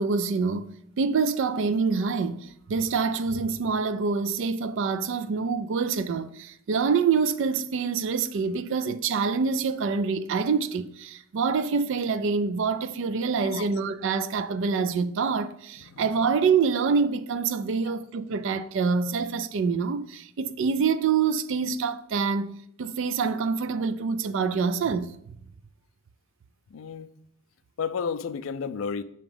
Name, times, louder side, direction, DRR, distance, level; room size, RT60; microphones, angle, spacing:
voice 1, 0.0-25.1, right 5 dB, 65° right, 0.4 m, -26 dB
voice 2, 26.7-27.1 27.8-29.0, left 6 dB, 70° left, 0.4 m, -32 dB
5.9 x 2.9 x 5.4 m
head